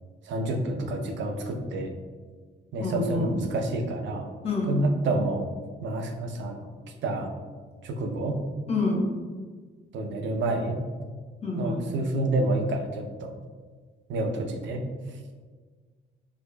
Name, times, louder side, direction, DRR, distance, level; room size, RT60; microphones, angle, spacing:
voice 1, 0.2-1.9 2.7-4.3 4.7-5.5 5.8-6.6 6.9-7.3 7.8-8.4 9.9-10.9 11.6-13.3 14.1-15.2, right 2 dB, 70° right, 4 dB, 0.5 m, -29 dB
voice 2, 2.8-3.3 4.4-4.8 8.7-9.1 11.4-11.8, left 2 dB, 30° left, -3 dB, 0.9 m, -27 dB
4.6 x 2.4 x 2.2 m, 1.5 s
cardioid pair, 90°, 20 cm